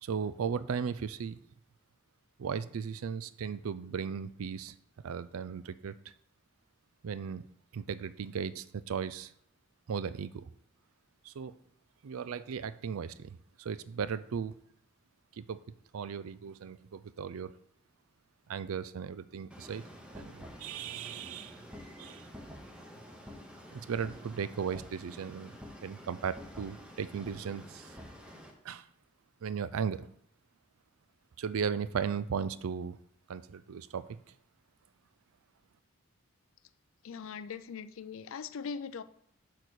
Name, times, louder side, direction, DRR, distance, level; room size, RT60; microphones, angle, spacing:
voice 1, 0.0-1.4 2.4-4.7 5.0-5.9 7.0-7.4 7.7-9.3 9.9-10.5 11.2-11.6 12.0-14.5 15.4-15.6 15.9-17.5 18.5-19.8 20.1-21.6 22.0-22.3 23.7-25.5 25.8-27.9 28.6-28.8 29.4-30.1 31.4-33.0 33.3-34.2, right 6 dB, 80° right, 15 dB, 0.4 m, -36 dB
sound 1, 19.5-28.5, equal, 5° right, 0.8 m, -49 dB
voice 2, 37.0-39.0, left 6 dB, 70° left, 13 dB, 0.4 m, -40 dB
6.6 x 4.1 x 6.3 m, 0.69 s
head